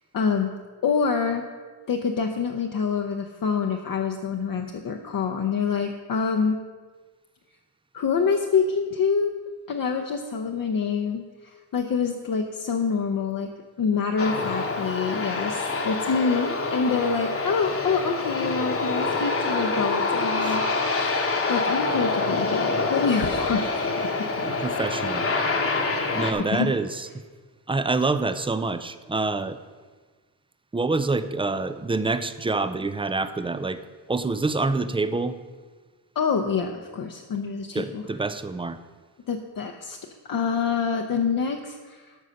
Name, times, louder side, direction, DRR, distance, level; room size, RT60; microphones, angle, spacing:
voice 1, 0.1-0.5 0.8-1.4 1.9-6.6 7.9-9.3 9.7-13.5 13.8-24.3 26.5-26.7 36.2-38.0 39.3-40.0 40.2-42.2, left 5 dB, 50° left, 3 dB, 0.7 m, -26 dB
Aircraft, 14.2-26.3, left 3 dB, 30° left, 1.0 m, -26 dB
voice 2, 24.4-25.2 26.1-27.1 27.7-29.6 30.7-33.8 34.1-35.4 37.7-38.8, right 3 dB, 15° right, 12 dB, 0.3 m, -26 dB
13.0 x 5.5 x 6.4 m, 1.4 s
wide cardioid pair, 150°, 42 cm